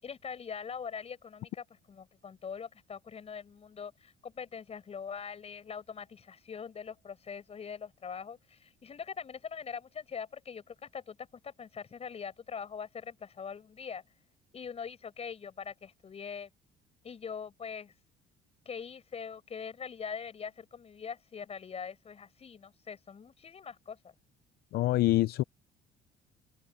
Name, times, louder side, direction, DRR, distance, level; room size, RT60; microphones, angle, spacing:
voice 1, 0.0-14.0 14.5-16.5 17.0-17.9 18.6-24.1, left 6 dB, 35° left, 7.9 m, -42 dB
voice 2, 24.7-25.4, left 16 dB, 70° left, 0.6 m, -25 dB
open air
cardioid pair, 110°, 17 cm